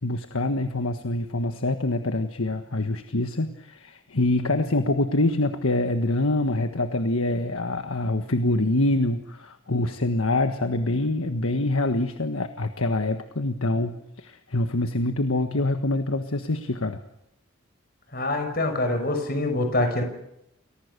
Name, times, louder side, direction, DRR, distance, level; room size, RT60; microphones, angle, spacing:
voice 1, 0.0-17.0, left 2 dB, 90° left, 7 dB, 1.5 m, -25 dB
voice 2, 18.1-20.0, left 2 dB, 45° left, 6 dB, 5.7 m, -25 dB
29.5 x 23.0 x 6.8 m, 0.82 s
head